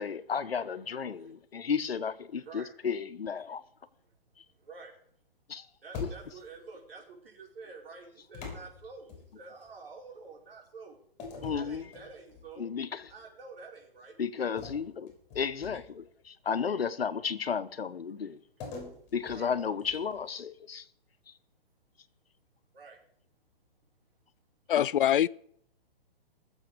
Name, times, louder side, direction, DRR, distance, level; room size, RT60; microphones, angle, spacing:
voice 1, 0.0-3.6 5.5-5.7 6.0-6.1 11.4-11.9 12.6-13.1 14.2-18.4 19.1-20.9 21.3-21.4 24.8-24.9, left 6 dB, 90° left, 1.1 m, -33 dB
voice 2, 2.3-2.7 4.0-4.1 4.5-4.9 5.8-11.0 11.5-12.7 13.1-14.2 15.7-15.8 19.3-19.5 22.7-23.0, right 4 dB, 75° right, 5.2 m, -48 dB
sound 1, 5.9-6.6 8.3-9.7 11.2-12.5 13.0-13.2 14.6-16.1 18.6-20.2, left 4 dB, 25° left, 5.7 m, -44 dB
voice 3, 24.7-25.3, left 11 dB, 60° left, 0.5 m, -24 dB
19.5 x 7.4 x 5.1 m
hypercardioid pair, 145°, 29 cm